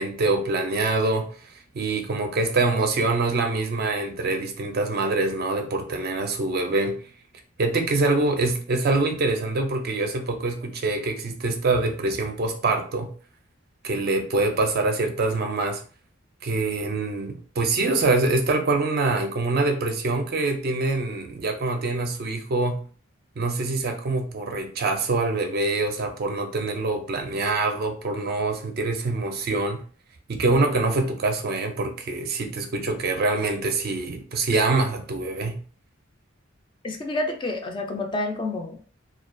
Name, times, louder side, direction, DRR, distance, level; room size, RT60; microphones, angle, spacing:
voice 1, 0.0-1.3 1.7-7.0 7.6-13.1 13.8-15.8 16.4-22.9 23.4-29.8 30.3-35.6, right 3 dB, 50° right, 0.4 m, -25 dB
voice 2, 36.8-38.8, left 2 dB, 25° left, 0.3 m, -29 dB
2.2 x 2.2 x 2.5 m
head